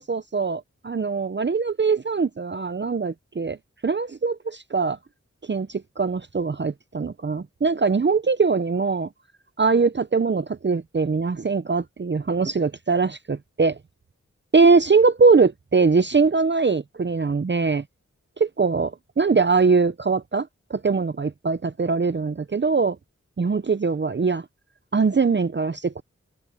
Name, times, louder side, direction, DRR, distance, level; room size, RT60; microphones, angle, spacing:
voice 1, 0.0-3.6 3.8-5.0 5.5-9.1 9.6-13.8 14.5-17.8 18.4-18.9 19.2-23.0 23.4-24.4 24.9-26.0, right 4 dB, 35° right, 0.6 m, -22 dB
cardioid pair, 45°, 30 cm